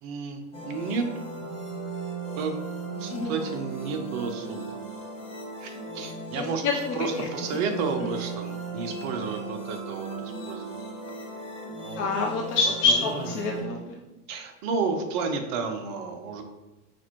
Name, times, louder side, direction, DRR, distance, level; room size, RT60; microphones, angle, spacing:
voice 1, 0.0-1.0 2.4-2.5 3.0-4.8 5.6-10.8 11.8-12.1 12.7-13.3 14.3-16.4, right 4 dB, 40° right, 5 dB, 0.6 m, -32 dB
sound 1, 0.5-13.6, right 3 dB, 15° left, 1.0 m, -37 dB
voice 2, 6.4-6.7 12.0-13.8, left 4 dB, 30° left, 0 dB, 0.4 m, -26 dB
5.8 x 2.5 x 2.9 m, 1.0 s
hypercardioid pair, 105°, 46 cm